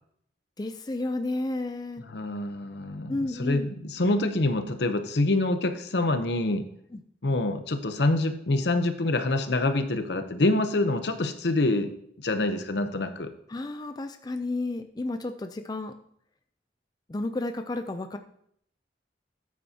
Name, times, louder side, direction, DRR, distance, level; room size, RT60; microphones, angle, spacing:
voice 1, 0.6-2.0 3.1-3.7 6.9-7.0 13.5-15.9 17.1-18.2, left 2 dB, 25° left, 8 dB, 0.4 m, -32 dB
voice 2, 2.1-6.7 7.2-11.9 12.2-13.3, left 2 dB, 70° left, 9 dB, 0.8 m, -26 dB
13.5 x 8.4 x 2.8 m, 0.69 s
head